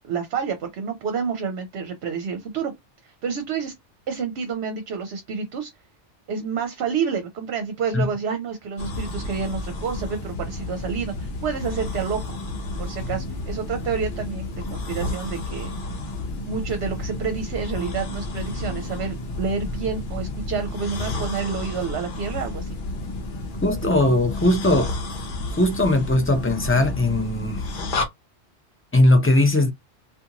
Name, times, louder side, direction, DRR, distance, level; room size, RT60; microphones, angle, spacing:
voice 1, 0.1-2.7 3.0-3.7 4.1-5.7 6.3-12.2 12.8-15.7 16.5-22.7, right 6 dB, 70° right, 0.8 m, -29 dB
sound 1, 8.8-28.1, left 2 dB, 50° left, 0.8 m, -31 dB
voice 2, 23.6-24.9 25.5-27.6 28.9-29.7, left 1 dB, 20° left, 0.4 m, -19 dB
2.5 x 2.4 x 2.8 m
omnidirectional pair, 1.2 m